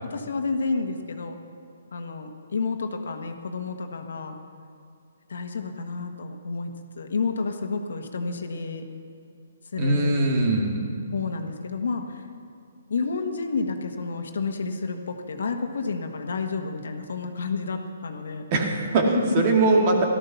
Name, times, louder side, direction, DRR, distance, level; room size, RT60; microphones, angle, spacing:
voice 1, 0.0-1.4 1.9-4.3 5.3-8.9 9.7-10.1 11.1-12.2 12.9-18.4 19.1-19.5, left 4 dB, 75° left, 5 dB, 1.4 m, -30 dB
voice 2, 9.8-10.8 18.5-20.0, right 2 dB, 35° right, 1 dB, 2.1 m, -21 dB
14.0 x 13.0 x 5.8 m, 2.5 s
hypercardioid pair, 155°, 0 cm